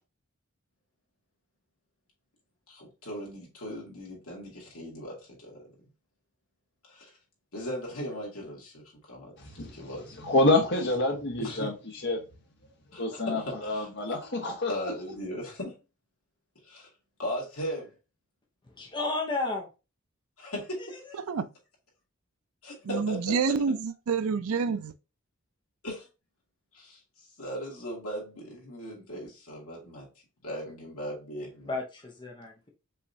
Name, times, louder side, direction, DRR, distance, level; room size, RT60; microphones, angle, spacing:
voice 1, 2.7-5.6 6.8-7.1 7.5-9.3 9.6-10.2 11.4-11.7 12.9-14.2 14.7-15.7 16.6-16.9 17.2-17.9 20.4-21.2 22.6-23.6 25.8-26.1 26.7-27.0 27.4-30.1 30.4-31.7, equal, 75° left, 2.3 m, -38 dB
voice 2, 10.3-11.7 12.0-12.2 13.0-14.7, left 2 dB, 55° left, 1.3 m, -26 dB
voice 3, 18.8-19.7 20.8-20.9 31.7-32.7, left 3 dB, 20° left, 0.7 m, -32 dB
voice 4, 22.9-24.9, right 5 dB, 80° right, 0.4 m, -28 dB
5.5 x 3.1 x 2.7 m
head